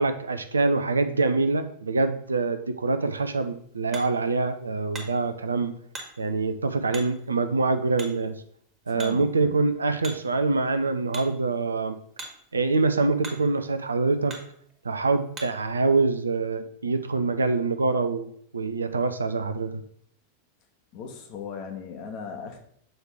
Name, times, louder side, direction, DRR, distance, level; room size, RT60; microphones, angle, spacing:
voice 1, 0.0-5.7 6.2-8.4 8.9-12.0 12.5-14.4 14.8-19.8, right 3 dB, 75° right, 11 dB, 0.5 m, -25 dB
Hammer, 3.1-15.7, right 2 dB, 25° right, 1.6 m, -46 dB
voice 2, 8.9-9.6 20.9-22.6, left 5 dB, 45° left, 4 dB, 1.2 m, -37 dB
7.7 x 3.2 x 4.7 m, 0.66 s
figure-of-eight pair, 90°, 0 cm